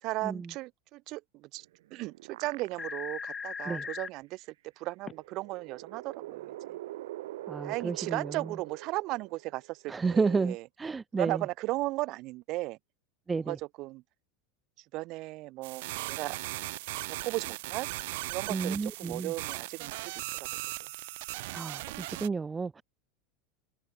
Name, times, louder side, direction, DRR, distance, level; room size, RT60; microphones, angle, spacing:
voice 1, 0.0-1.6 1.9-4.5 4.8-6.8 7.6-10.7 11.1-12.8 13.4-14.0 14.9-16.4 17.1-17.9 18.3-20.5, right 20 dB, 35° right, 6.6 m, -36 dB
sound 1, 1.6-3.3 3.7-3.8 5.1-9.9, right 15 dB, 80° right, 6.1 m, -44 dB
sound 2, 2.4-2.5 2.8-4.1 5.1-5.2, left 6 dB, 15° left, 1.2 m, -38 dB
voice 2, 7.5-8.4 9.9-11.4 13.3-13.6 18.5-19.3 21.5-22.8, right 4 dB, 10° right, 2.2 m, -31 dB
sound 3, 15.6-22.3, right 20 dB, 60° right, 5.6 m, -38 dB
supercardioid pair, 170°, 0 cm